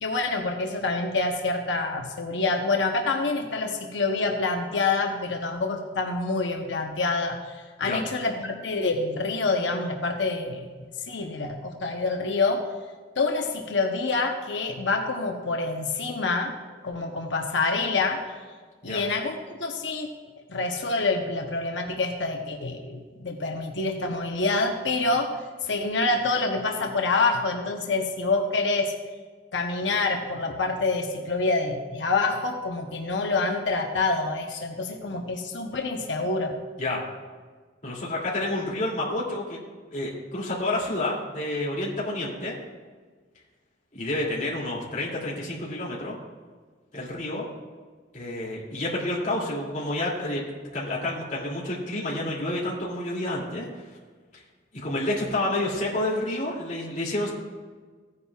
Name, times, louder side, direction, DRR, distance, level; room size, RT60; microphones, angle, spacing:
voice 1, 0.0-10.6 11.1-12.7 13.2-16.5 16.8-18.2 18.8-20.1 20.5-28.9 29.5-36.6, left 3 dB, 90° left, 3 dB, 0.9 m, -27 dB
voice 2, 37.8-39.6 39.9-42.5 43.9-46.1 46.9-47.4 48.1-50.4 50.7-53.7 54.3-54.4 54.7-57.3, left 1 dB, 45° left, -5 dB, 2.6 m, -29 dB
15.5 x 9.6 x 2.4 m, 1.5 s
head